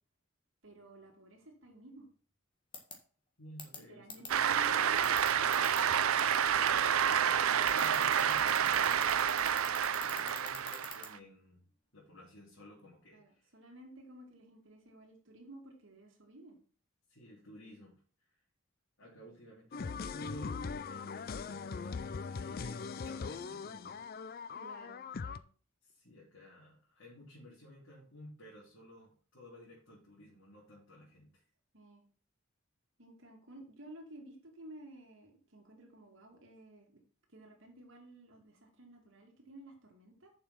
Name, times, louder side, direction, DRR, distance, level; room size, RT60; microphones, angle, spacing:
voice 1, 0.6-2.1 3.9-5.2 13.1-16.6 24.5-25.4 31.7-32.0 33.0-37.0 37.3-40.3, right 1 dB, 65° right, 1 dB, 2.6 m, -53 dB
sound 1, 2.7-2.9 3.6-3.8 4.1-4.3 5.0-5.8 7.7-11.1, left 5 dB, 25° left, 1.6 m, -43 dB
voice 2, 3.4-4.3 6.4-9.1 9.6-11.7 11.9-13.5 17.1-18.0 19.0-24.0 25.8-31.4, equal, 70° left, -7 dB, 3.8 m, -55 dB
Cheering / Applause, 4.3-11.2, right 8 dB, 85° right, 0.5 m, -29 dB
sound 2, 19.7-25.4, left 5 dB, 45° left, 0.4 m, -40 dB
7.1 x 5.8 x 6.0 m, 0.41 s
head